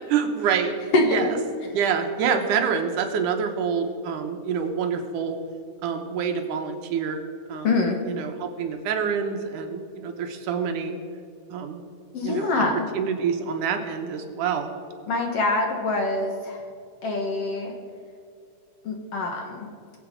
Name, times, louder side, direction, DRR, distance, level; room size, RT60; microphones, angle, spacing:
voice 1, 0.1-1.4 1.7-5.4 5.8-7.2 7.5-7.7 8.0-11.0 11.5-11.8 12.2-12.7 12.9-14.7, right 6 dB, 75° right, 5 dB, 2.5 m, -27 dB
voice 2, 7.6-8.0 12.1-12.8 15.1-16.6 17.0-17.7 18.8-19.7, left 3 dB, 55° left, 2 dB, 2.0 m, -24 dB
21.0 x 8.0 x 5.1 m, 2.5 s
omnidirectional pair, 3.8 m